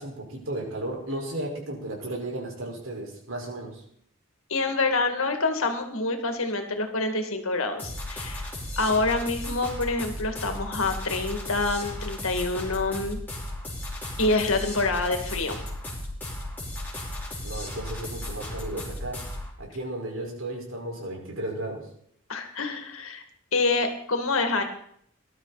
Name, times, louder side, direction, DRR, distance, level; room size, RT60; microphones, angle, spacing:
voice 1, 0.0-3.8 17.4-19.3 19.6-21.9, right 1 dB, 70° right, 0 dB, 4.9 m, -34 dB
voice 2, 4.5-8.5 8.8-13.2 14.2-15.6 22.3-23.2 23.5-24.6, left 3 dB, 75° left, 6 dB, 2.3 m, -26 dB
sound 1, 7.8-19.5, left 1 dB, 10° left, 4.7 m, -35 dB
19.5 x 12.0 x 4.2 m, 0.67 s
head